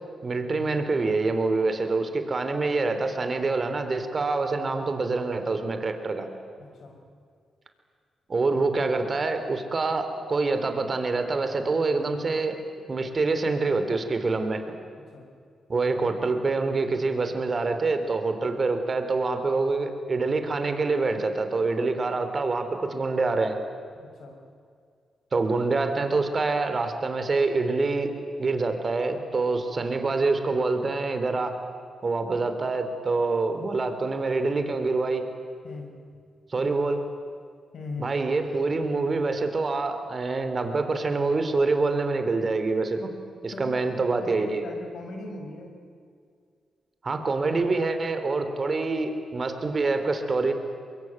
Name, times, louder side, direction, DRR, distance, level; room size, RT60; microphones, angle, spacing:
voice 1, 0.2-6.3 8.3-12.6 12.9-14.6 15.7-23.6 25.3-28.1 28.4-31.6 32.0-35.3 36.5-37.0 38.0-43.1 43.4-44.6 47.0-50.5, right 3 dB, 45° right, 8 dB, 3.5 m, -26 dB
voice 2, 6.6-7.0 15.0-15.3 24.0-24.4 35.6-35.9 37.7-38.1 43.5-43.7 44.2-45.7, left 3 dB, 70° left, 3 dB, 5.2 m, -39 dB
23.0 x 23.0 x 9.3 m, 2.2 s
supercardioid pair, 45°, 0 cm